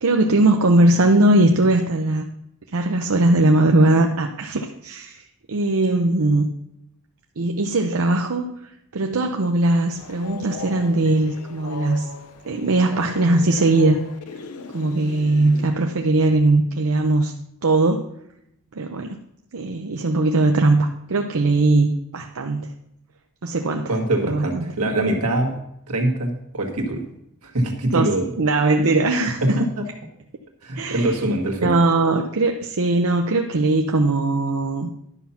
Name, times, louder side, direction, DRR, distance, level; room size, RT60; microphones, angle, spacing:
voice 1, 0.0-2.3 2.7-5.2 5.5-6.5 7.4-12.1 12.4-14.0 14.7-17.3 17.6-18.0 18.7-19.2 19.5-22.7 23.4-23.9 24.2-24.6 27.9-28.1 28.4-29.7 30.7-31.2 31.6-34.9, right 2 dB, 65° right, 3 dB, 0.7 m, -19 dB
Train, 9.9-15.7, left 4 dB, 90° left, 0.7 m, -38 dB
voice 2, 23.9-25.6 25.9-27.0 27.4-28.3 29.4-29.9 30.6-31.8, right 1 dB, 85° right, 2 dB, 1.7 m, -23 dB
11.0 x 5.7 x 5.7 m, 0.78 s
head